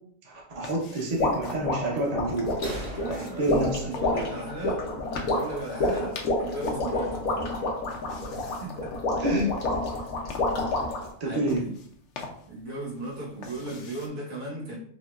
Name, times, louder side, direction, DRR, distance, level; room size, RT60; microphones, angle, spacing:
voice 1, 0.2-2.5 3.1-3.9 9.2-9.5 11.2-11.6, right 1 dB, 35° right, -3 dB, 0.9 m, -28 dB
sound 1, 0.6-14.1, left 4 dB, 65° left, 0.9 m, -45 dB
sound 2, 1.2-11.1, left 2 dB, 85° left, 1.4 m, -28 dB
sound 3, 2.6-6.1, right 1 dB, 65° right, 1.2 m, -42 dB
voice 2, 2.9-4.9 5.2-7.7 8.3-9.0 9.9-10.0 11.2-11.7 12.5-14.8, right 1 dB, 85° right, -4 dB, 1.8 m, -36 dB
5.3 x 2.9 x 2.5 m, 0.62 s
omnidirectional pair, 1.4 m